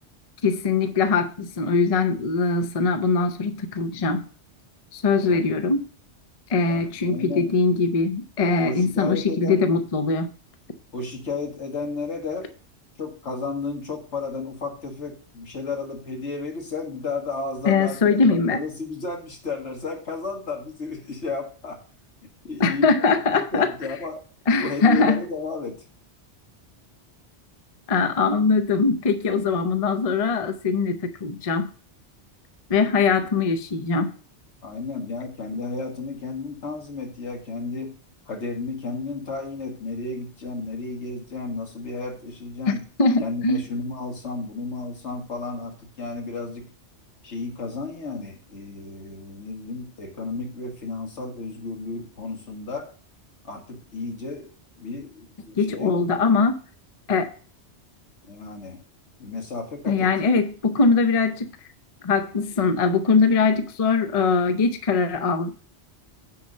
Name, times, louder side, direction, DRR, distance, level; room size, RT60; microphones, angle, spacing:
voice 1, 0.4-4.2 4.9-5.8 6.5-10.3 17.7-18.6 22.6-23.7 24.5-25.2 27.9-31.7 32.7-34.1 43.0-43.6 55.6-56.6 57.1-57.3 59.9-61.5 62.0-65.5, left 4 dB, 35° left, 9 dB, 0.7 m, -21 dB
voice 2, 5.2-5.6 6.7-7.5 8.6-9.6 10.9-12.5 13.0-21.8 22.4-24.2 24.6-25.8 34.6-37.9 38.3-42.8 43.2-46.7 47.2-52.9 53.4-54.5 54.8-56.1 58.3-58.8 59.2-60.1, left 3 dB, 75° left, 2 dB, 2.0 m, -33 dB
9.7 x 4.2 x 6.4 m, 0.39 s
omnidirectional pair, 1.2 m